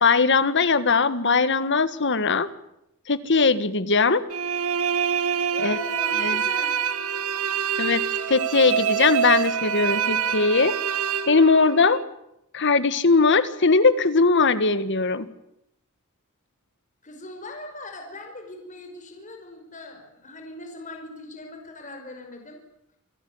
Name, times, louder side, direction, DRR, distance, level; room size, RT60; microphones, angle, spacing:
voice 1, 0.0-2.5 3.1-4.3 5.6-5.8 6.2-6.4 7.8-8.0 8.3-10.8 11.3-12.0 12.5-15.3, left 4 dB, 55° left, 13 dB, 1.7 m, -20 dB
sound 1, 4.3-12.0, right 8 dB, 85° right, 1.8 m, -26 dB
voice 2, 5.5-6.8 17.0-22.6, left 2 dB, 35° left, 3 dB, 5.4 m, -40 dB
28.5 x 16.5 x 9.7 m, 0.81 s
head